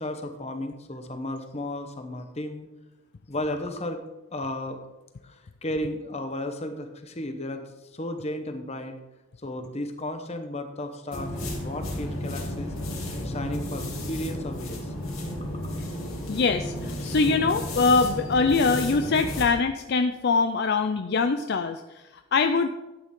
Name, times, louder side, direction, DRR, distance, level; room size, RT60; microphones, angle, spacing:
voice 1, 0.0-2.7 3.3-4.0 4.3-4.8 5.2-9.0 9.4-12.7 13.2-14.9 15.4-15.7, left 1 dB, 30° left, 7 dB, 1.0 m, -34 dB
sound 1, 11.1-19.5, left 1 dB, 75° left, 3.0 m, -33 dB
voice 2, 16.3-22.7, left 4 dB, 50° left, 7 dB, 0.4 m, -23 dB
12.0 x 8.9 x 3.7 m, 1.0 s
head